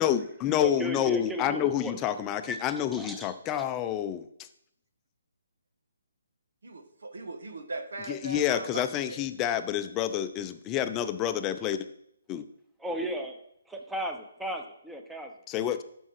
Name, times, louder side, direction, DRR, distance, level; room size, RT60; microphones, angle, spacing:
voice 1, 0.0-4.3 8.1-11.8 12.3-12.4 15.5-15.8, left 10 dB, 20° left, 10 dB, 0.6 m, -28 dB
voice 2, 0.6-2.0 2.5-3.3 12.8-13.4 13.7-15.3, right 1 dB, 5° right, 4 dB, 1.0 m, -36 dB
voice 3, 6.6-9.3, right 3 dB, 70° right, 8 dB, 1.6 m, -40 dB
13.0 x 5.5 x 4.8 m, 0.74 s
figure-of-eight pair, 140°, 0 cm